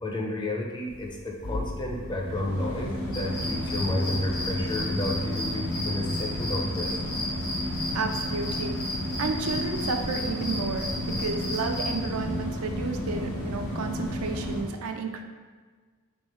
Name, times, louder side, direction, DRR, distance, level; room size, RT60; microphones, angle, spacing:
voice 1, 0.0-6.9, left 1 dB, 20° left, 0 dB, 0.5 m, -31 dB
sound 1, 0.9-14.6, left 1 dB, 90° left, 1.0 m, -32 dB
sound 2, 3.1-12.0, left 1 dB, 75° left, 1.0 m, -35 dB
voice 2, 7.9-8.8 9.2-15.2, right 4 dB, 75° right, 5 dB, 0.4 m, -32 dB
3.5 x 3.1 x 4.2 m, 1.5 s
head